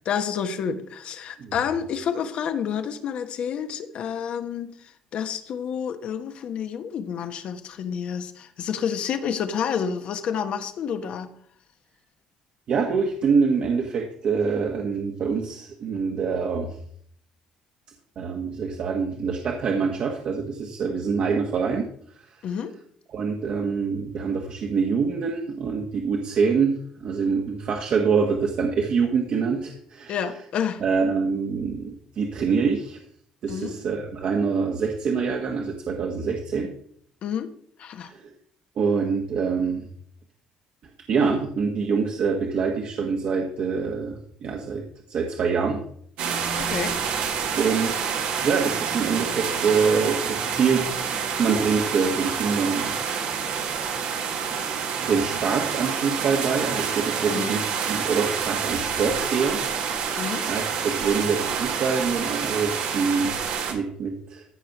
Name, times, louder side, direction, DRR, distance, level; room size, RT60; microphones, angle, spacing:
voice 1, 0.0-11.3 22.4-22.7 30.1-30.8 33.5-33.7 37.2-37.5 37.8-38.1 46.5-47.0 57.3-57.6 60.2-60.5, left 7 dB, 60° left, 1.3 m, -29 dB
voice 2, 12.7-16.8 18.2-21.9 22.2-22.4 23.1-30.2 30.8-33.0 33.4-36.7 38.0-38.3 38.8-39.9 41.1-44.8 45.1-45.8 47.6-50.9 51.4-53.0 55.0-59.6 60.0-63.3 63.7-64.4, right 5 dB, 55° right, 1.6 m, -25 dB
sound 1, 46.2-63.7, right 6 dB, 85° right, 2.1 m, -28 dB
14.5 x 5.0 x 6.1 m
cardioid pair, 105°, 2 cm